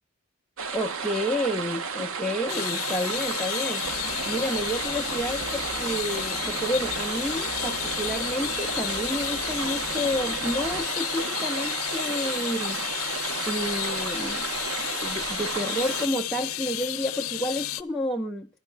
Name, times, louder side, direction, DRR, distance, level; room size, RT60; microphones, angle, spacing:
sound 1, 0.6-16.1, right 5 dB, 75° right, 0.7 m, -33 dB
voice 1, 0.7-3.8 4.3-12.8 13.5-14.6 14.9-18.5, equal, ahead, 0.5 m, -30 dB
sound 2, 2.5-17.8, left 14 dB, 85° left, 0.7 m, -32 dB
sound 3, 3.8-10.9, right 1 dB, 35° right, 1.8 m, -41 dB
12.0 x 5.4 x 8.5 m
head